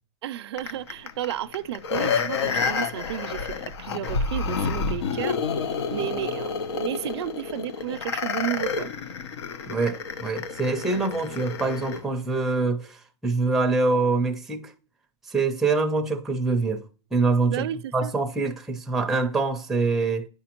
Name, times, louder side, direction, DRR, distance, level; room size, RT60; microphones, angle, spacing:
voice 1, 0.2-5.4 5.7-8.9 17.5-18.1, right 12 dB, 80° right, 0.4 m, -32 dB
sound 1, 0.6-12.0 12.5-12.6, left 5 dB, 85° left, 0.8 m, -29 dB
voice 2, 9.7-14.7 15.3-16.8 17.1-17.7 17.9-20.3, right 3 dB, ahead, 0.5 m, -25 dB
9.8 x 5.0 x 2.9 m
supercardioid pair, 160°, 14 cm